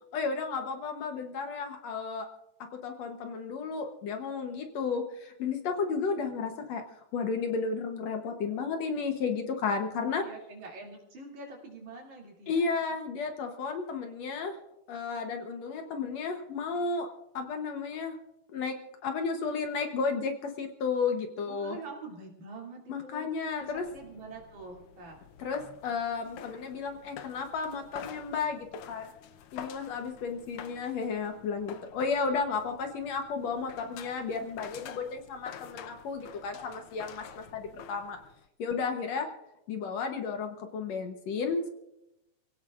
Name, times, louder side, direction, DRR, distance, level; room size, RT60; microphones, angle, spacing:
voice 1, 0.1-2.3 2.8-6.8 7.1-10.2 12.5-14.6 14.9-17.1 17.3-18.2 18.5-18.7 19.0-21.8 22.9-23.9 25.4-29.1 29.5-38.2 38.6-39.3 39.7-41.7, left 5 dB, 65° left, 4 dB, 2.1 m, -33 dB
voice 2, 9.9-12.7 21.4-23.3 23.6-25.2, right 3 dB, 70° right, -2 dB, 4.0 m, -45 dB
sound 1, 23.6-38.5, left 8 dB, 90° left, 1.2 m, -48 dB
28.0 x 17.0 x 2.5 m, 0.88 s
omnidirectional pair, 3.5 m